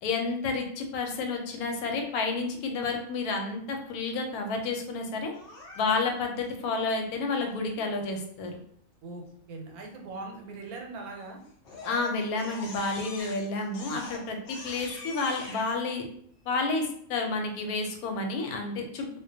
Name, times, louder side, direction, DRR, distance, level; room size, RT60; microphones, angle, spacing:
voice 1, 0.0-5.3 5.8-8.5 11.8-16.0 16.5-19.2, left 3 dB, 90° left, 3 dB, 1.1 m, -30 dB
Crying sobbing, 5.3-6.3 10.9-11.3 11.6-15.7, left 2 dB, 60° left, 0.6 m, -44 dB
voice 2, 9.0-11.4, right 3 dB, 90° right, 2 dB, 1.1 m, -41 dB
2.3 x 2.1 x 2.6 m, 0.65 s
omnidirectional pair, 1.5 m